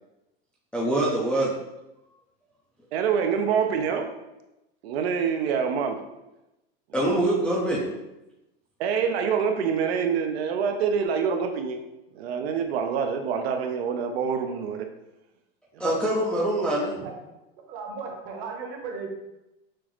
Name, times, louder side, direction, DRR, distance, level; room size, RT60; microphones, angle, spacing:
voice 1, 0.7-1.5 6.9-7.9 15.8-16.9, right 1 dB, 5° left, -6 dB, 0.3 m, -24 dB
voice 2, 2.9-4.1 4.8-6.0 7.0-7.2 8.8-11.8 12.1-14.9 15.7-15.8, right 6 dB, 80° right, 5 dB, 0.6 m, -26 dB
voice 3, 17.7-19.1, right 5 dB, 40° right, 2 dB, 0.9 m, -36 dB
6.0 x 2.5 x 3.0 m, 0.94 s
supercardioid pair, 155°, 31 cm